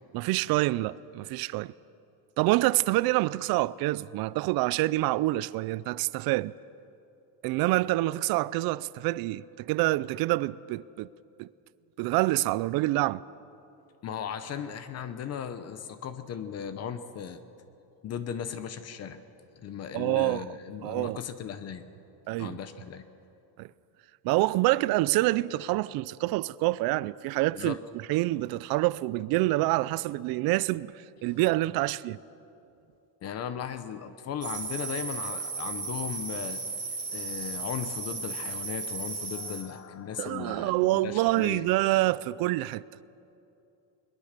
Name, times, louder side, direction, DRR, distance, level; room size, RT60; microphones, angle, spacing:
voice 1, 0.1-1.7 2.4-6.5 7.4-11.1 11.4-11.5 12.0-13.2 19.9-20.4 20.8-21.2 22.3-22.6 23.6-23.7 24.2-27.8 28.1-32.2 40.2-42.8, right 19 dB, 55° right, 0.5 m, -27 dB
voice 2, 14.0-17.4 18.0-19.2 19.6-21.8 22.4-23.0 27.5-27.8 31.2-31.4 33.2-36.6 37.1-41.7, left 8 dB, 35° left, 0.8 m, -37 dB
sound 1, 34.4-39.6, right 4 dB, 10° right, 3.9 m, -35 dB
21.5 x 21.5 x 6.7 m
cardioid pair, 175°, 45 cm